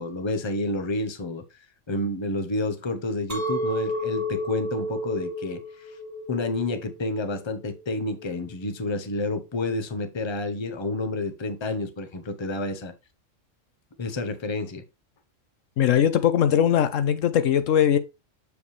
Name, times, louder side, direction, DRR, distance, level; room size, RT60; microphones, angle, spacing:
voice 1, 0.0-1.4 1.9-6.0 6.3-12.9 14.0-14.8, left 2 dB, 25° left, 0.8 m, -29 dB
Chink clink, 3.3-8.5, equal, 15° right, 1.4 m, -32 dB
voice 2, 15.8-18.0, left 9 dB, 75° left, 1.0 m, -20 dB
7.2 x 4.9 x 3.2 m
omnidirectional pair, 1.3 m